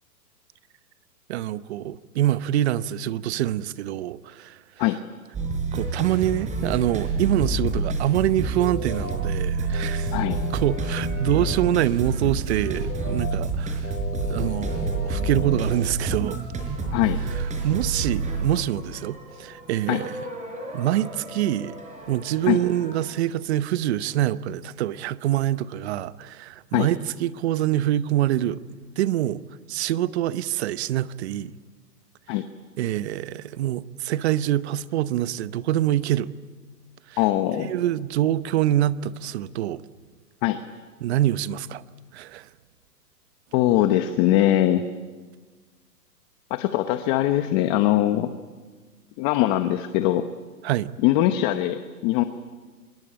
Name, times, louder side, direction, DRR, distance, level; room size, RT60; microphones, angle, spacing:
voice 1, 1.3-4.6 5.7-10.2 10.5-13.9 14.2-16.4 17.3-20.2 20.7-21.8 22.1-29.4 29.7-31.5 32.8-36.3 37.1-37.2 37.6-39.8 41.0-41.8 42.1-42.5 50.6-50.9, right 13 dB, 40° right, 0.9 m, -25 dB
sound 1, 5.3-23.0, right 3 dB, 15° right, 4.6 m, -29 dB
sound 2, 8.6-9.2 9.7-11.7 12.7-13.3 13.8-15.8, left 5 dB, 90° left, 7.1 m, -37 dB
voice 2, 37.2-37.7 40.4-40.6 43.5-44.8 46.5-48.3 49.2-50.3 51.0-52.2, left 14 dB, 25° left, 1.0 m, -21 dB
26.5 x 22.0 x 8.8 m
hypercardioid pair, 140°, 50 cm